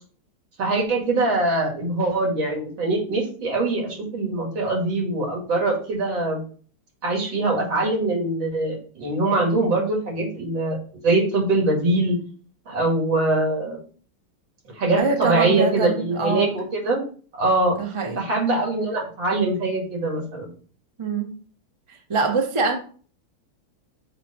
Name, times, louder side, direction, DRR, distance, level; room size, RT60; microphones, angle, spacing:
voice 1, 0.6-6.4 7.0-10.8 11.0-12.2 12.7-13.8 14.8-17.0 17.4-17.8 18.2-20.5, right 2 dB, 65° right, -1 dB, 2.8 m, -23 dB
voice 2, 15.0-16.5 17.7-18.2 21.0-21.4 21.9-22.8, right 4 dB, 40° right, 3 dB, 0.4 m, -24 dB
8.2 x 3.4 x 4.2 m, 0.42 s
omnidirectional pair, 2.3 m